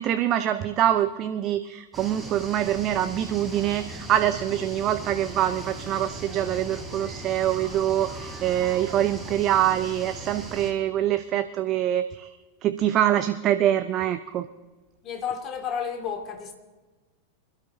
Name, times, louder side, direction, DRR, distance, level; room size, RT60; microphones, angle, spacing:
voice 1, 0.0-12.3 12.6-14.5, right 11 dB, 35° right, 0.5 m, -25 dB
sound 1, 1.9-10.7, right 1 dB, 5° right, 3.4 m, -38 dB
voice 2, 15.0-16.5, left 7 dB, 30° left, 2.1 m, -31 dB
26.0 x 12.5 x 2.8 m
figure-of-eight pair, 90°, 0 cm